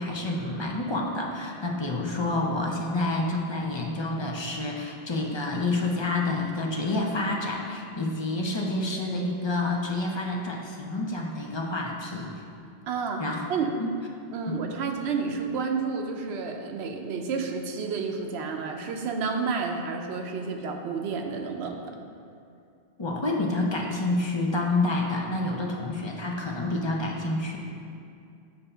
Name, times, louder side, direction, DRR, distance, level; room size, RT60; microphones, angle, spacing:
voice 1, 0.0-12.4 13.2-13.4 13.8-13.9 14.5-14.6 23.0-27.6, left 2 dB, 35° left, 0 dB, 0.5 m, -28 dB
voice 2, 12.9-13.2 13.5-13.9 14.3-22.0, right 5 dB, 85° right, 3 dB, 0.9 m, -30 dB
7.6 x 2.7 x 5.4 m, 2.5 s
omnidirectional pair, 1.1 m